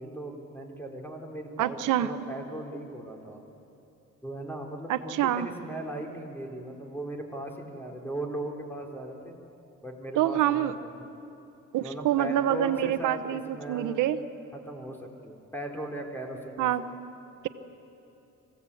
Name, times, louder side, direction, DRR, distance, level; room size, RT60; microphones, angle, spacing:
voice 1, 0.0-3.4 4.2-9.4 9.8-11.2 11.8-14.0 14.5-16.7, right 1 dB, 5° left, 1 dB, 4.0 m, -38 dB
voice 2, 1.6-2.1 4.9-5.5 10.2-10.7 11.7-14.2 16.6-16.8, right 12 dB, 85° right, 12 dB, 1.1 m, -26 dB
25.5 x 17.0 x 8.5 m, 2.9 s
cardioid pair, 90°, 30 cm